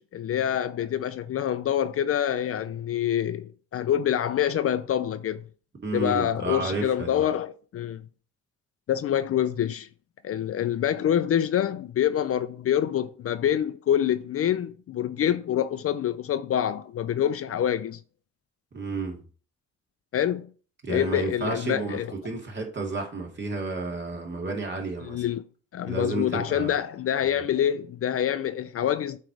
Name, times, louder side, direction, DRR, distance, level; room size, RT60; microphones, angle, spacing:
voice 1, 0.0-5.4 5.9-8.0 8.9-9.9 10.2-18.0 20.1-20.5 20.9-22.1 25.0-25.4 25.7-29.2, left 10 dB, 50° left, 0.5 m, -26 dB
voice 2, 5.8-7.2 18.7-19.2 20.8-25.2 25.9-26.7, right 3 dB, 35° right, 2.1 m, -31 dB
7.6 x 3.2 x 4.8 m
cardioid pair, 90°, 30 cm